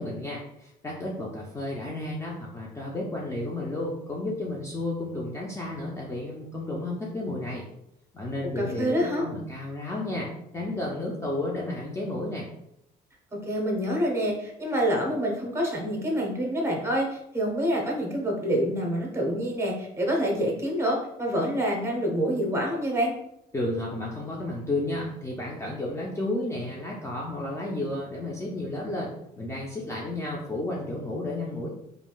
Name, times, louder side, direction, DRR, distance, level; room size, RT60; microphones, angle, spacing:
voice 1, 0.0-7.6 8.1-10.3 10.5-12.5 23.5-29.1 29.4-31.7, left 2 dB, 15° left, -3 dB, 0.5 m, -32 dB
voice 2, 8.6-9.3 13.3-23.1, equal, 15° right, -1 dB, 0.9 m, -27 dB
3.3 x 2.5 x 2.3 m, 0.79 s
cardioid pair, 110°, 17 cm